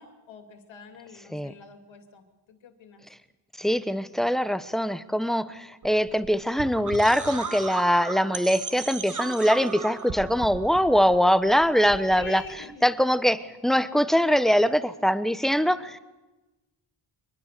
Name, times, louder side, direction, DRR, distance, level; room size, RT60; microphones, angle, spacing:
voice 1, 0.0-3.0 12.1-12.8, left 6 dB, 85° left, 5 dB, 2.9 m, -45 dB
voice 2, 3.6-12.4 12.8-16.0, equal, ahead, 12 dB, 1.0 m, -23 dB
sound 1, 5.8-12.6, right 5 dB, 40° right, 1.7 m, -36 dB
24.0 x 21.0 x 6.8 m, 1.1 s
wide cardioid pair, 110°, 45 cm